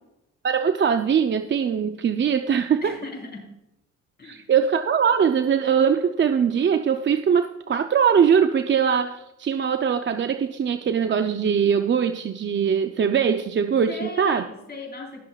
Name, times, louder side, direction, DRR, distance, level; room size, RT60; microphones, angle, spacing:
voice 1, 0.4-2.9 4.2-14.4, right 7 dB, 40° right, 8 dB, 0.6 m, -21 dB
voice 2, 2.8-3.5 4.2-4.5 13.9-15.2, left 2 dB, 35° left, -1 dB, 4.4 m, -37 dB
20.5 x 7.4 x 2.4 m, 0.91 s
cardioid pair, 90°, 30 cm